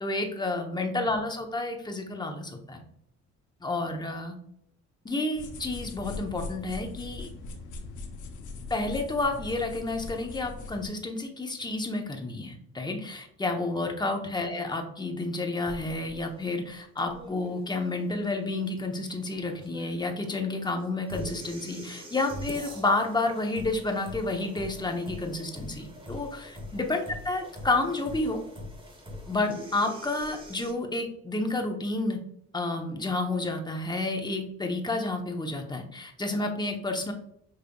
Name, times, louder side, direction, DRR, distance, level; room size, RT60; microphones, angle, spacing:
voice 1, 0.0-2.8 3.6-4.3 5.0-7.3 8.7-28.4 29.3-32.2 32.5-37.1, left 2 dB, 15° left, 3 dB, 0.8 m, -30 dB
sound 1, 5.3-10.9, left 3 dB, 80° left, 0.8 m, -40 dB
sound 2, 15.7-30.7, equal, 15° right, 1.0 m, -43 dB
5.3 x 3.3 x 2.3 m, 0.69 s
cardioid pair, 90°, 30 cm